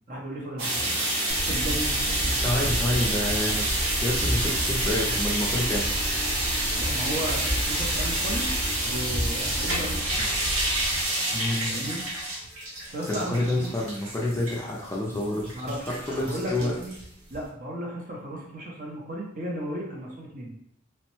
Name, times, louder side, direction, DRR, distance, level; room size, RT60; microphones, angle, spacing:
voice 1, 0.1-1.0 1.4-3.0 6.7-8.5 8.8-10.3 11.7-12.0 12.9-13.7 15.5-16.9 17.3-20.5, right 1 dB, 40° right, -2 dB, 0.6 m, -35 dB
sound 1, 0.6-17.5, right 1 dB, 90° right, 0.9 m, -28 dB
sound 2, 1.3-11.1, equal, 65° right, 1.0 m, -32 dB
voice 2, 2.3-5.9 11.3-11.9 13.0-15.5 15.9-16.7, left 1 dB, 15° left, -3 dB, 0.3 m, -28 dB
2.9 x 2.1 x 3.0 m, 0.71 s
head